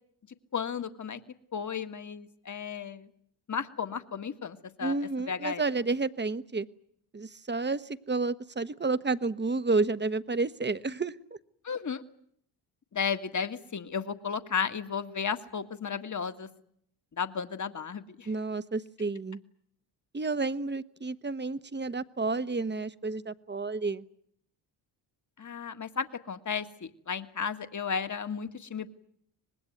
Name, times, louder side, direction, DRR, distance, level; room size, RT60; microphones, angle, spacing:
voice 1, 0.5-1.2 1.5-3.1 3.5-5.0 5.3-5.6 11.6-12.0 12.9-16.5 17.2-18.3 25.4-28.9, left 6 dB, 35° left, 9 dB, 1.8 m, -34 dB
voice 2, 4.8-6.7 7.1-11.1 18.3-19.4 20.1-24.0, right 3 dB, 20° right, 14 dB, 1.2 m, -30 dB
25.0 x 20.0 x 9.3 m, 0.70 s
supercardioid pair, 60°, 49 cm